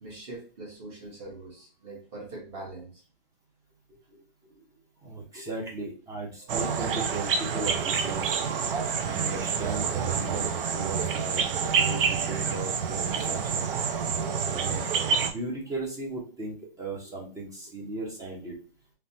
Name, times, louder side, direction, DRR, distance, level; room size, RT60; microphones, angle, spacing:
voice 1, 0.0-3.0 4.1-4.8 5.3-5.4 7.8-7.9 8.8-8.9 14.2-14.4 17.0-17.1, right 2 dB, 35° right, -3 dB, 1.2 m, -43 dB
voice 2, 5.0-8.3 9.0-13.7 14.4-14.9 15.3-18.5, right 2 dB, 10° right, -2 dB, 0.5 m, -36 dB
sound 1, 6.5-15.3, right 6 dB, 65° right, 0.5 m, -28 dB
3.1 x 2.1 x 2.7 m, 0.39 s
hypercardioid pair, 140°, 29 cm